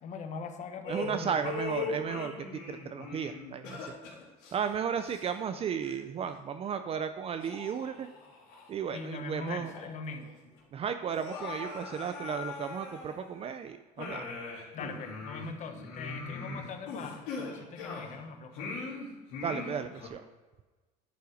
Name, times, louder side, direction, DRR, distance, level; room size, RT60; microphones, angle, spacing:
voice 1, 0.0-1.5 8.9-10.4 14.7-18.8, left 4 dB, 50° left, 7 dB, 1.2 m, -41 dB
sound 1, 0.8-5.6 5.8-6.0 6.7-6.8 7.4-8.7 9.1-9.2 9.6-10.2 10.4-10.5 11.1-13.5 14.0-18.2 18.5-20.1, left 4 dB, 80° left, 3.2 m, -40 dB
voice 2, 0.9-2.3 2.7-3.9 4.5-8.1 8.7-9.7 10.7-14.2 19.4-20.2, right 7 dB, 40° right, 9 dB, 0.5 m, -34 dB
10.5 x 5.6 x 5.0 m, 1.2 s
supercardioid pair, 105°, 16 cm